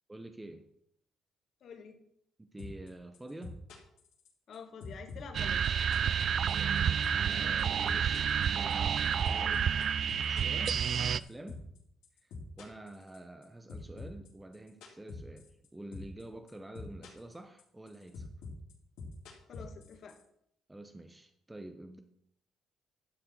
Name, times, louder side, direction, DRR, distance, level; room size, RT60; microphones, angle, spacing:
voice 1, 0.1-0.7 2.4-3.6 6.4-9.7 10.3-11.6 12.2-18.3 20.7-22.0, right 1 dB, 10° right, 0.7 m, -48 dB
voice 2, 1.6-2.0 4.5-5.7 19.5-20.2, left 6 dB, 55° left, 1.9 m, -48 dB
sound 1, 2.6-2.9 3.1-4.5 4.8-6.8 7.0-7.3 7.6-11.8 12.0-13.4 13.7-15.7 15.9-16.2 16.5-17.3 17.6-20.2, left 4 dB, 85° left, 3.4 m, -45 dB
sound 2, 5.3-11.2, right 8 dB, 50° right, 0.3 m, -29 dB
11.5 x 6.8 x 4.6 m
cardioid pair, 110°, 0 cm